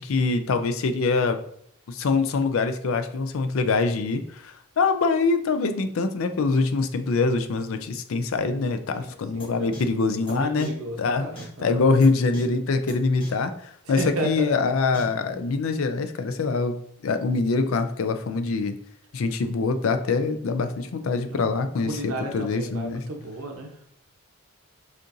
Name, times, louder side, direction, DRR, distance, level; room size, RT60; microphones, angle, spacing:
voice 1, 0.0-1.4 1.9-10.7 11.0-11.3 11.6-18.8 19.1-23.0, left 4 dB, 70° left, 9 dB, 0.4 m, -24 dB
voice 2, 9.0-9.7 10.3-11.9 14.0-14.5 21.1-21.4 21.8-23.7, right 1 dB, 90° right, 2 dB, 0.9 m, -33 dB
sound 1, 9.4-9.5 9.7-9.8 10.3-10.4 10.6-10.7 11.4-11.5 12.0-12.1 12.3-12.4 12.9-13.0 13.2-13.3 14.0-14.1 14.9-15.0, equal, 25° left, 0.8 m, -38 dB
6.5 x 2.5 x 2.6 m, 0.67 s
head